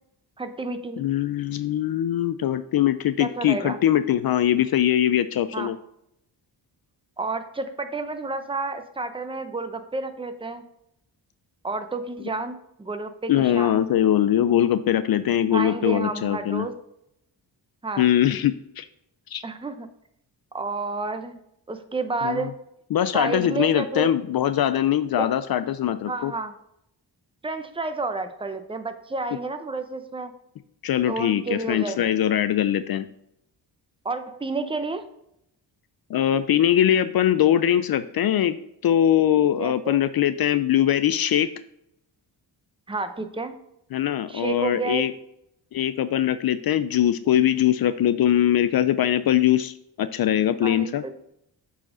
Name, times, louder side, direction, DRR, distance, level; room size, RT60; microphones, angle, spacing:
voice 1, 0.4-1.1 3.2-3.8 5.5-5.7 7.2-10.6 11.6-13.8 15.5-16.7 17.8-18.1 19.4-19.9 20.5-21.4 21.7-22.5 23.1-24.1 25.2-25.3 26.1-26.5 27.4-30.3 31.1-32.1 34.0-35.0 39.6-40.0 42.9-43.5 44.3-45.0 50.6-51.1, right 3 dB, 10° right, 8 dB, 0.7 m, -30 dB
voice 2, 1.0-5.8 13.3-16.7 18.0-18.8 19.3-19.4 22.2-22.5 22.9-26.3 30.8-33.1 36.1-38.6 38.8-41.5 43.9-45.1 45.7-51.0, left 11 dB, 55° left, 12 dB, 0.5 m, -22 dB
7.4 x 4.2 x 3.8 m, 0.76 s
cardioid pair, 80°, 43 cm